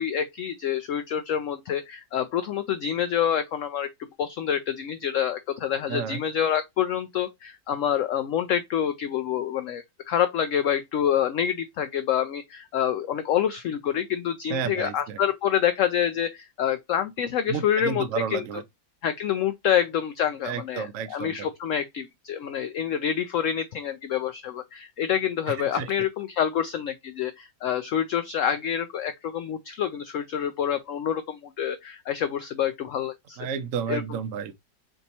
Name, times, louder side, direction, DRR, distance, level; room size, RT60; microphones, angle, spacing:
voice 1, 0.0-18.1 18.3-18.4 19.0-33.4 33.9-34.0, left 9 dB, 75° left, 0.7 m, -27 dB
voice 2, 5.9-6.2 14.5-15.2 17.4-18.6 20.4-21.5 25.5-25.9 33.4-34.5, right 7 dB, 60° right, 0.8 m, -31 dB
3.5 x 2.8 x 4.1 m
omnidirectional pair, 1.8 m